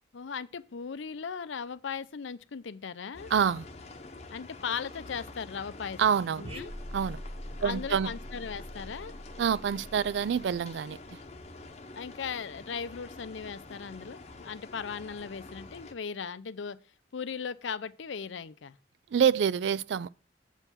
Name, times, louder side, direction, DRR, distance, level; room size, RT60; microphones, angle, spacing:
voice 1, 0.1-3.3 4.3-6.0 6.4-6.7 7.6-9.1 12.0-16.8 17.1-18.8, left 6 dB, 80° left, 0.5 m, -38 dB
sound 1, 3.1-15.9, left 2 dB, 35° left, 0.9 m, -47 dB
voice 2, 3.3-3.6 6.0-6.4 6.9-7.2 7.6-8.1 9.4-11.2 19.1-20.1, right 7 dB, 70° right, 0.3 m, -27 dB
sound 2, 6.4-11.1, equal, 30° right, 0.9 m, -43 dB
8.0 x 4.6 x 7.2 m
head